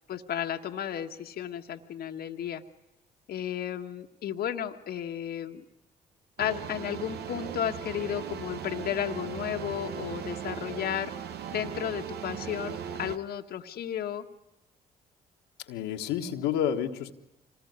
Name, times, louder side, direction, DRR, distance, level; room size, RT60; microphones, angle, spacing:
voice 1, 0.1-2.6 3.3-5.6 6.4-11.1 11.5-14.2, left 10 dB, 65° left, 4 dB, 1.3 m, -33 dB
sound 1, 6.4-13.2, right 8 dB, 70° right, 1.2 m, -38 dB
voice 2, 15.7-17.1, left 9 dB, 85° left, 3 dB, 1.5 m, -29 dB
26.0 x 20.0 x 9.6 m, 0.92 s
supercardioid pair, 55°, 17 cm